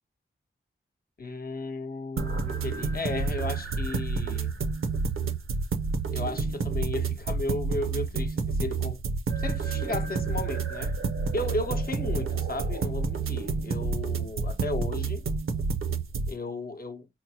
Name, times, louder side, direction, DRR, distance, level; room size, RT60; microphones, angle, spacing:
voice 1, 1.2-4.6 6.1-9.0 9.4-11.0 11.3-15.3 16.3-17.1, left 2 dB, 45° left, 0.7 m, -34 dB
sound 1, 2.2-16.3, right 4 dB, 75° right, 0.6 m, -29 dB
4.1 x 2.0 x 2.7 m
wide cardioid pair, 70°, 21 cm